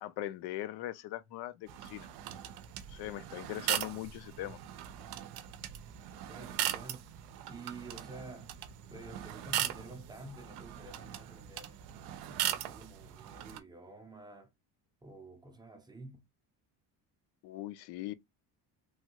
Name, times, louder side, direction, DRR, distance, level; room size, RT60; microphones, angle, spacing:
voice 1, 0.0-2.1 2.9-4.6 17.4-18.1, left 14 dB, 75° left, 0.6 m, -40 dB
sound 1, 1.7-13.6, right 12 dB, 80° right, 0.6 m, -39 dB
voice 2, 6.3-7.1 7.5-8.5 8.9-11.8 12.3-14.5 15.0-16.3, right 2 dB, 10° right, 0.5 m, -50 dB
3.1 x 2.3 x 2.8 m
cardioid pair, 155°, 39 cm